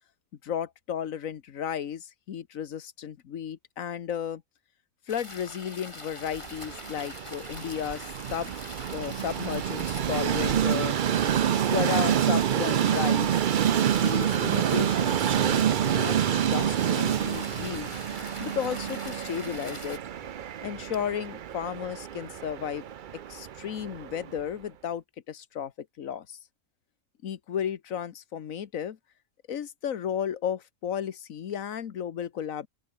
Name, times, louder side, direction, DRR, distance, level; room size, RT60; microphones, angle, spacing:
voice 1, 0.4-4.4 5.1-11.0 11.5-13.4 14.0-17.9 18.4-20.0 20.6-22.8 23.3-26.4 27.2-29.0 29.5-32.7, left 8 dB, 85° left, 1.5 m, -34 dB
sound 1, 5.1-20.0, left 1 dB, 20° left, 4.1 m, -44 dB
Train, 6.3-24.4, right 9 dB, 55° right, 0.6 m, -27 dB
open air
omnidirectional pair, 1.4 m